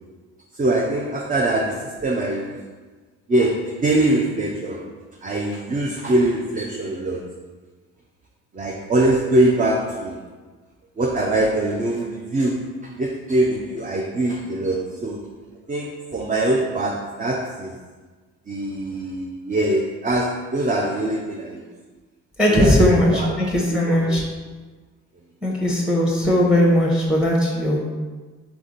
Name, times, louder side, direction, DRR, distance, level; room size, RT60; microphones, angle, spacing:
voice 1, 0.6-2.6 3.3-4.8 5.2-7.2 8.5-10.2 11.0-12.7 13.0-15.2 15.7-17.7 18.5-21.6 22.5-23.3 23.7-24.2, right 1 dB, 25° right, -1 dB, 0.6 m, -23 dB
voice 2, 22.4-24.2 25.4-27.9, left 1 dB, ahead, -2 dB, 1.0 m, -18 dB
3.6 x 3.4 x 4.0 m, 1.4 s
hypercardioid pair, 55°, 35 cm